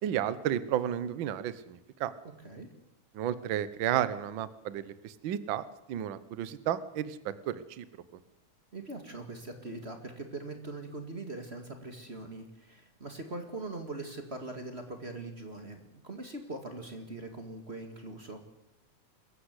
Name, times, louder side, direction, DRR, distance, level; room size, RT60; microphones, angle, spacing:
voice 1, 0.0-2.1 3.1-5.6 5.9-7.8, right 10 dB, 65° right, 15 dB, 1.2 m, -32 dB
voice 2, 8.7-18.4, right 2 dB, 25° right, 5 dB, 2.0 m, -41 dB
24.5 x 14.5 x 8.2 m, 0.87 s
omnidirectional pair, 3.4 m